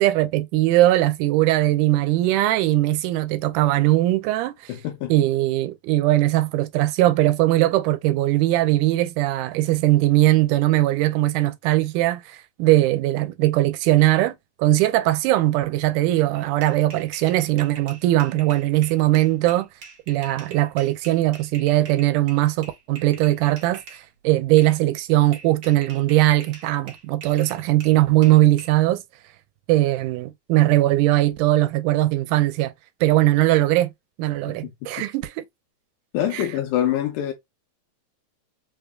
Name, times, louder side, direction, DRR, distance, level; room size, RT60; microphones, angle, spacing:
voice 1, 0.0-4.7 5.1-14.3 14.6-19.7 20.1-29.0 29.7-32.7 33.0-33.9 34.2-35.5 36.3-36.4, right 16 dB, 90° right, 2.1 m, -20 dB
voice 2, 4.7-5.1 34.6-34.7 36.1-37.3, left 11 dB, 80° left, 2.0 m, -25 dB
sound 1, 16.3-24.0 24.6-24.8 25.3-28.7, right 5 dB, 60° right, 1.4 m, -44 dB
5.0 x 2.3 x 2.3 m
omnidirectional pair, 3.6 m